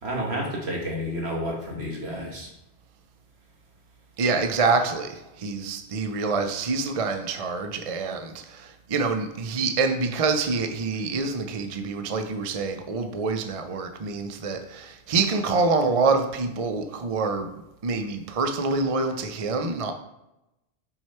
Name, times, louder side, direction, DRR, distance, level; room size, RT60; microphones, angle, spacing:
voice 1, 0.0-2.5, equal, 65° right, -1 dB, 1.9 m, -30 dB
voice 2, 4.2-17.5 17.8-19.9, right 4 dB, 40° right, 6 dB, 0.5 m, -26 dB
6.3 x 4.7 x 4.4 m, 0.91 s
omnidirectional pair, 1.2 m